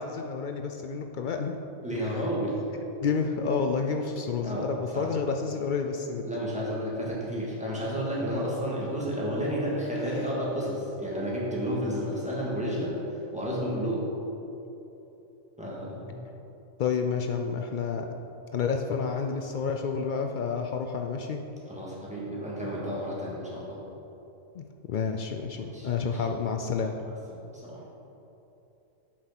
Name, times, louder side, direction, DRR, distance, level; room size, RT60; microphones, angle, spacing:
voice 1, 0.0-1.5 3.0-6.3 16.8-18.2 18.5-21.4 24.5-26.9, left 5 dB, 85° left, 4 dB, 0.4 m, -29 dB
voice 2, 1.8-2.6 4.4-4.7 4.9-5.0 6.2-14.1 15.6-16.3 21.7-23.8 25.6-26.2 27.0-27.1 27.5-27.9, equal, 5° right, -7 dB, 2.1 m, -31 dB
7.8 x 6.5 x 6.0 m, 3.0 s
omnidirectional pair, 1.4 m